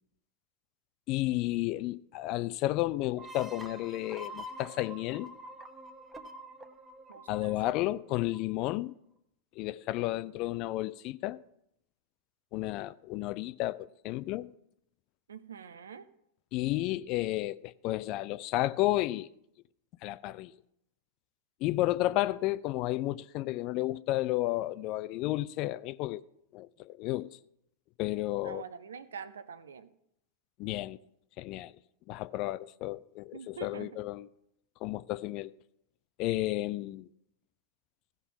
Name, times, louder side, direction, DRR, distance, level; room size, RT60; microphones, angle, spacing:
voice 1, 1.1-5.3 7.3-8.9 9.6-11.4 12.5-14.5 16.5-19.3 20.0-20.5 21.6-26.2 26.5-27.4 28.0-28.6 30.6-31.0 31.4-31.7 32.1-34.3 34.8-35.5 36.2-37.1, left 17 dB, 40° left, 0.4 m, -32 dB
sound 1, 3.2-8.6, equal, 10° right, 1.0 m, -46 dB
voice 2, 7.1-7.6 15.3-16.1 28.4-29.9 33.3-34.0, right 6 dB, 65° right, 0.7 m, -45 dB
16.0 x 5.5 x 5.8 m
figure-of-eight pair, 90°, 0 cm